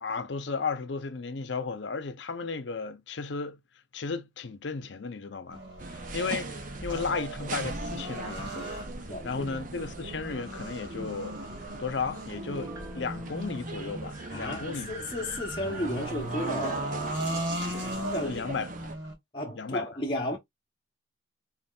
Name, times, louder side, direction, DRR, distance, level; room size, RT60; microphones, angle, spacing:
voice 1, 0.0-3.6 3.9-5.6 5.9-8.8 9.2-11.4 11.8-14.9 18.2-18.7 19.5-19.8, left 4 dB, 75° left, 0.7 m, -34 dB
sound 1, 5.5-19.1, right 1 dB, 85° right, 2.1 m, -38 dB
sound 2, 5.8-19.0, right 3 dB, 45° right, 0.6 m, -41 dB
voice 2, 9.1-9.5 14.3-18.6 19.3-20.4, left 1 dB, 25° left, 0.9 m, -34 dB
Piano, 12.4-15.0 15.4-15.5, right 2 dB, 20° right, 1.1 m, -48 dB
4.2 x 4.0 x 2.3 m
head